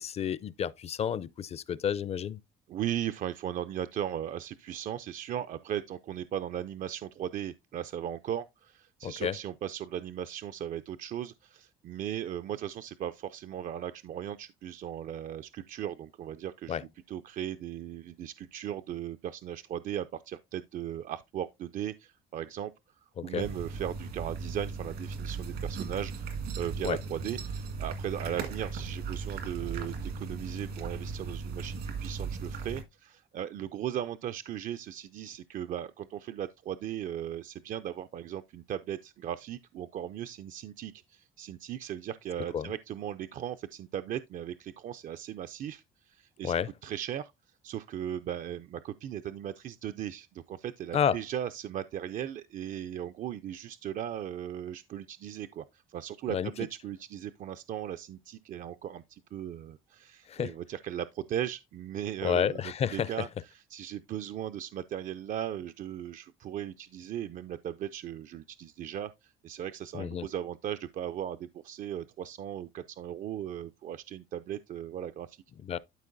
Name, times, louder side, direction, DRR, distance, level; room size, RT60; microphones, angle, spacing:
voice 1, 0.0-2.4 9.0-9.4 16.7-16.8 23.2-23.5 26.8-27.0 42.5-42.7 46.4-46.7 50.9-51.2 56.3-56.5 60.3-60.6 62.2-63.3 69.9-70.3 75.6-75.8, left 8 dB, 40° left, 0.4 m, -30 dB
voice 2, 2.7-22.7 23.2-46.5 46.8-47.3 47.6-62.6 62.9-75.4, right 10 dB, 50° right, 0.4 m, -37 dB
sound 1, 23.4-32.8, right 4 dB, 75° right, 1.7 m, -37 dB
12.0 x 4.4 x 2.6 m
cardioid pair, 110°, 17 cm